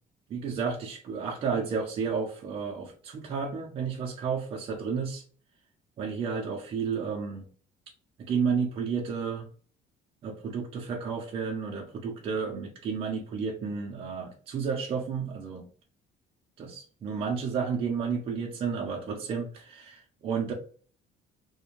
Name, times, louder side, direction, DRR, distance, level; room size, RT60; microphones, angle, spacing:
voice 1, 0.3-5.2 6.0-7.5 8.2-9.5 10.2-15.6 16.6-20.5, right 5 dB, 35° right, 0 dB, 0.4 m, -32 dB
2.4 x 2.1 x 2.9 m, 0.43 s
cardioid pair, 175°, 17 cm